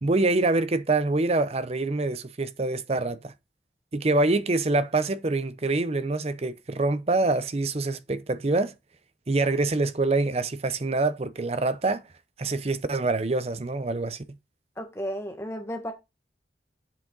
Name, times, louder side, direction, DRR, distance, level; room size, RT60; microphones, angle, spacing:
voice 1, 0.0-3.3 3.9-8.7 9.3-12.0 12.4-14.2, right 2 dB, 35° right, 0.6 m, -25 dB
voice 2, 14.8-15.9, equal, 15° left, 1.5 m, -33 dB
7.5 x 6.1 x 3.9 m
head